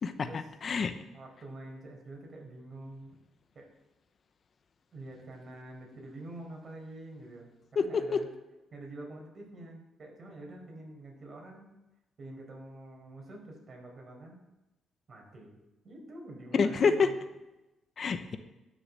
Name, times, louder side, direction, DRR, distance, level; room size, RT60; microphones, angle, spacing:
voice 1, 0.0-0.9 7.8-8.2 16.6-17.1 18.0-18.4, left 5 dB, 45° left, 10 dB, 0.8 m, -28 dB
voice 2, 1.1-3.2 3.5-3.7 4.9-8.3 8.7-11.7 12.2-14.4 15.1-17.2, right 2 dB, 40° right, 0 dB, 4.7 m, -47 dB
12.5 x 6.9 x 7.6 m, 1.0 s
cardioid pair, 90°, 0 cm